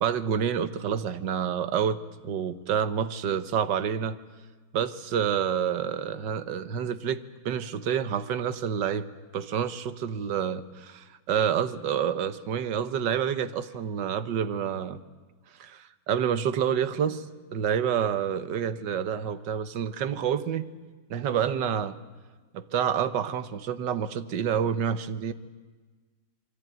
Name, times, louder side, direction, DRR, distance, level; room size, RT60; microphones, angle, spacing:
voice 1, 0.0-4.2 4.7-9.1 9.3-15.0 15.6-17.2 17.5-20.7 21.1-22.0 22.5-25.3, right 8 dB, 85° right, 12 dB, 1.7 m, -28 dB
27.0 x 22.5 x 9.2 m, 1.4 s
omnidirectional pair, 1.9 m